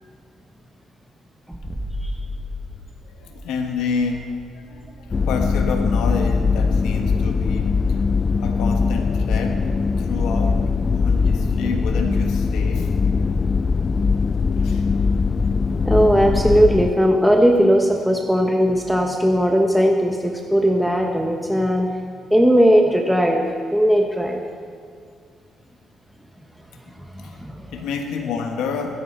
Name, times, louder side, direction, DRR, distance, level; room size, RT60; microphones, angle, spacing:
sound 1, 1.5-7.1, left 1 dB, 20° right, 1.6 m, -36 dB
voice 1, 3.0-8.0 8.4-9.6 10.0-12.9 14.6-14.9 27.2-27.4 27.7-29.0, left 5 dB, 90° left, 3 dB, 1.2 m, -29 dB
sound 2, 5.1-16.9, left 4 dB, 35° left, 0.4 m, -21 dB
voice 2, 15.8-21.9 22.3-24.4 27.0-27.7, equal, ahead, 2 dB, 1.1 m, -18 dB
21.0 x 9.9 x 4.5 m, 2.2 s
cardioid pair, 90°, 0 cm